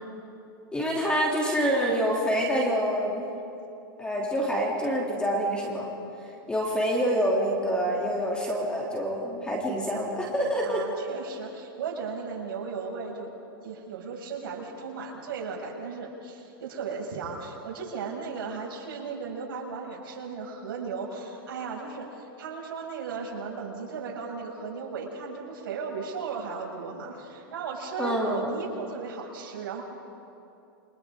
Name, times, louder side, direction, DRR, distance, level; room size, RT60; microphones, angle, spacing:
voice 1, 0.7-3.2 4.0-5.9 6.5-10.8 28.0-28.5, equal, 10° left, -3 dB, 2.9 m, -26 dB
voice 2, 10.6-13.3 13.6-29.8, right 5 dB, 75° right, -2 dB, 6.2 m, -36 dB
29.0 x 24.5 x 3.8 m, 2.7 s
supercardioid pair, 145°, 12 cm